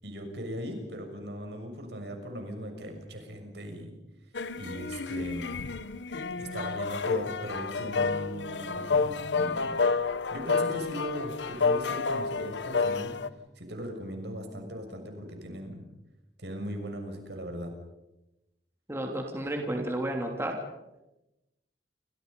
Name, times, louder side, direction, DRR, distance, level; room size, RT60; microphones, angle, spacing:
voice 1, 0.0-3.9 4.6-5.5 6.4-9.8 10.3-13.2 13.6-15.8 16.4-17.7, equal, 70° right, 4 dB, 6.6 m, -38 dB
sound 1, 4.3-13.3, left 4 dB, 85° left, 1.1 m, -30 dB
voice 2, 18.9-20.6, right 1 dB, 15° right, 2 dB, 3.0 m, -32 dB
29.0 x 26.5 x 5.4 m, 0.95 s
head